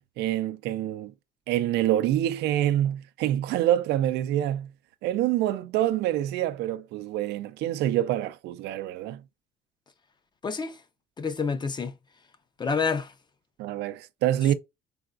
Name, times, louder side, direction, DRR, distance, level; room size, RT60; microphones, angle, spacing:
voice 1, 0.2-1.1 1.5-4.7 5.0-9.2 13.6-14.5, right 12 dB, 80° right, 0.4 m, -26 dB
voice 2, 10.4-10.8 11.2-12.0 12.6-13.1, left 5 dB, 25° left, 0.6 m, -28 dB
3.8 x 3.5 x 2.4 m
cardioid pair, 110°, 17 cm